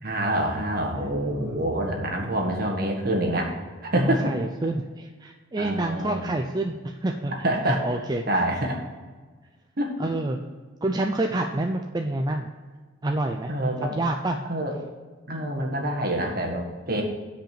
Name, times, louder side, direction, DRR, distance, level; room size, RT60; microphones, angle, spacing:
voice 1, 0.0-3.5 3.8-4.3 5.6-6.3 7.4-7.9 8.3-8.8 9.8-10.1 13.5-14.0 14.5-14.7 15.3-17.0, right 1 dB, 50° right, 1 dB, 1.6 m, -26 dB
voice 2, 1.3-1.7 4.0-7.3 7.7-8.4 10.0-10.4 10.8-12.5 13.0-13.5 13.8-14.4, right 2 dB, 20° right, 3 dB, 0.5 m, -28 dB
9.2 x 5.2 x 6.6 m, 1.4 s
head